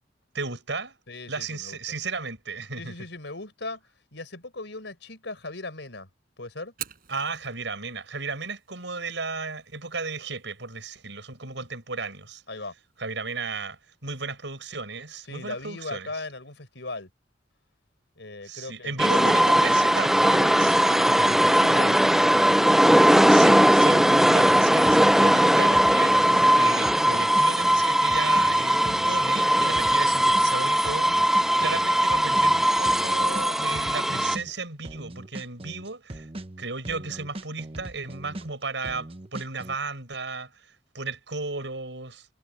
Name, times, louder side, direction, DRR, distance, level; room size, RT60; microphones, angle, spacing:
voice 1, 0.3-1.0 1.3-2.9 7.1-12.4 13.0-16.1 18.4-21.5 22.9-36.3 36.6-42.3, right 4 dB, 75° right, 7.8 m, -34 dB
voice 2, 1.1-1.8 2.8-6.1 6.4-6.7 12.5-12.7 15.3-17.1 18.2-19.5 21.6-22.4, left 2 dB, 70° left, 5.6 m, -38 dB
Fire, 6.6-14.6, right 11 dB, 55° right, 5.2 m, -49 dB
sound 1, 19.0-34.4, equal, ahead, 0.5 m, -19 dB
sound 2, 24.5-26.5 26.8-30.5 30.8-34.5 34.8-38.5 38.8-39.8, right 1 dB, 30° right, 1.0 m, -40 dB
head